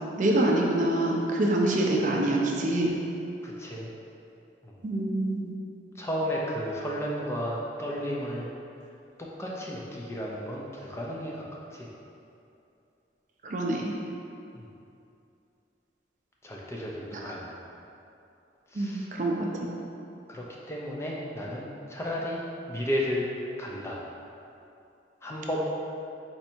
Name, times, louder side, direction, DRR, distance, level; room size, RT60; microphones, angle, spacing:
voice 1, 0.2-3.0 4.8-5.5 13.4-13.9 17.1-17.3 18.7-19.7, right 1 dB, 45° right, -1 dB, 0.5 m, -26 dB
voice 2, 3.4-3.9 4.6-4.8 6.0-8.5 9.2-11.4 11.7-11.9 14.5-14.7 16.4-17.5 18.7-19.1 20.3-22.4 22.7-23.3 23.6-24.0 25.2-25.6, equal, 15° left, -4 dB, 0.4 m, -33 dB
4.4 x 2.7 x 4.3 m, 2.7 s
head